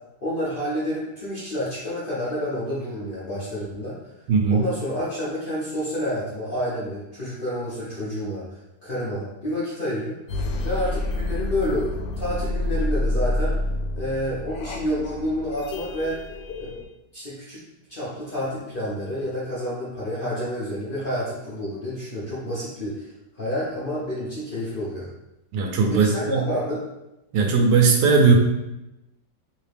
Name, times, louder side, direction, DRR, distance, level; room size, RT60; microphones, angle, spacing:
voice 1, 0.2-3.9 4.5-8.5 8.8-10.2 10.6-13.5 13.9-16.2 16.6-16.8 17.1-17.6 17.9-23.1 23.3-25.1 25.9-26.9, equal, 45° left, -8 dB, 0.7 m, -29 dB
voice 2, 4.3-4.7 25.5-26.5 27.3-28.3, right 5 dB, 80° right, 2 dB, 1.2 m, -18 dB
sound 1, 10.3-16.9, left 1 dB, 80° left, 1.2 m, -28 dB
3.2 x 2.8 x 3.3 m, 0.92 s
omnidirectional pair, 1.9 m